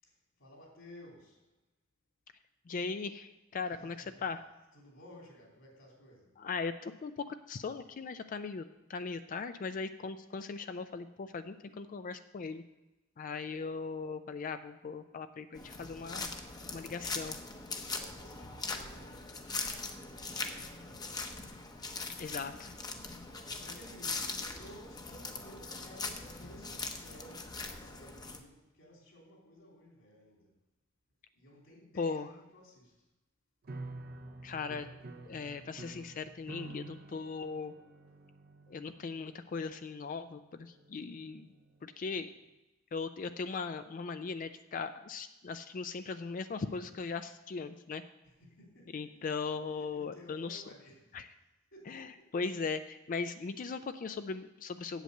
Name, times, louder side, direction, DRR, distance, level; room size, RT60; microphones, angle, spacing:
voice 1, 0.0-1.4 3.7-4.2 4.7-6.3 13.4-13.5 17.8-21.3 23.5-30.5 31.3-33.0 48.2-49.2 49.5-51.2 51.7-52.3, equal, 65° left, -1 dB, 3.1 m, -56 dB
voice 2, 2.7-4.4 6.4-12.6 13.2-16.3 16.7-17.4 22.2-22.7 32.0-32.3 34.4-34.9 35.3-37.7 38.7-41.5 41.8-42.3 42.9-48.0 48.9-50.6 51.1-51.3 51.9-55.0, left 4 dB, 40° left, 10 dB, 0.4 m, -39 dB
sound 1, 15.5-28.4, left 3 dB, 20° left, 0.8 m, -41 dB
sound 2, 33.6-42.0, right 2 dB, 45° right, 0.6 m, -50 dB
8.1 x 7.8 x 6.6 m, 1.0 s
head